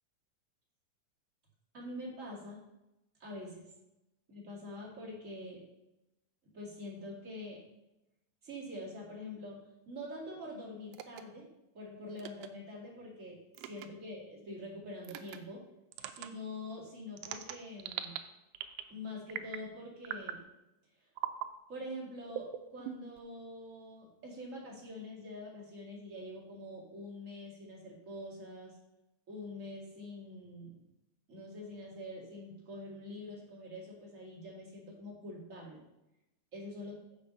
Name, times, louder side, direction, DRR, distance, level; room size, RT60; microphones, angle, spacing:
voice 1, 1.7-2.6 3.2-3.7 4.3-5.6 6.5-7.6 8.4-11.5 11.7-15.6 16.2-18.2 18.9-20.4 21.0-21.1 21.7-28.8 29.3-30.8 31.3-35.8 36.5-36.9, left 1 dB, 25° right, -4 dB, 2.1 m, -45 dB
sound 1, 10.9-11.2 12.2-12.5 13.5-13.9 15.0-15.4 15.9-16.3 17.2-18.2 18.5-18.9 19.3-19.7 20.0-20.4 21.2-21.5 22.3-23.2, right 12 dB, 80° right, 2.3 m, -40 dB
6.9 x 6.6 x 5.3 m, 0.93 s
omnidirectional pair, 4.2 m